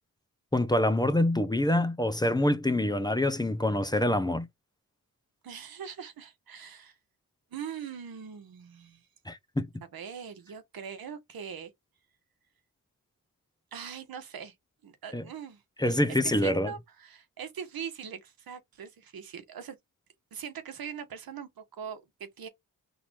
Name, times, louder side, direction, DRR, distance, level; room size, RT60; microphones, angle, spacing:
voice 1, 0.5-4.5 9.3-9.7 15.1-15.2 15.8-16.7, left 1 dB, 10° left, 0.7 m, -26 dB
voice 2, 5.4-7.0 7.5-9.1 9.9-11.7 13.7-14.5 14.8-15.6 15.9-19.8 20.3-22.5, right 7 dB, 85° right, 1.4 m, -41 dB
3.9 x 2.8 x 4.7 m
cardioid pair, 80°, 35 cm